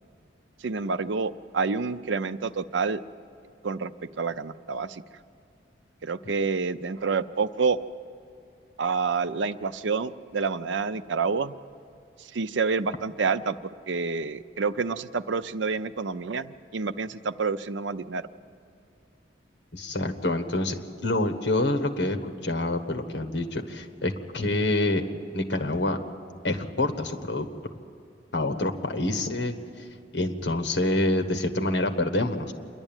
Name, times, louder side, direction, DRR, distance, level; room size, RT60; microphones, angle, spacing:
voice 1, 0.6-3.0 3.6-3.9 4.2-5.0 6.0-7.8 8.8-11.5 12.3-13.6 13.9-18.2, right 4 dB, 85° right, 13 dB, 0.6 m, -28 dB
voice 2, 19.7-25.0 25.3-26.0 26.4-27.5 28.3-29.5 30.1-32.5, left 2 dB, 75° left, 6 dB, 1.4 m, -27 dB
27.5 x 11.0 x 9.0 m, 2.5 s
head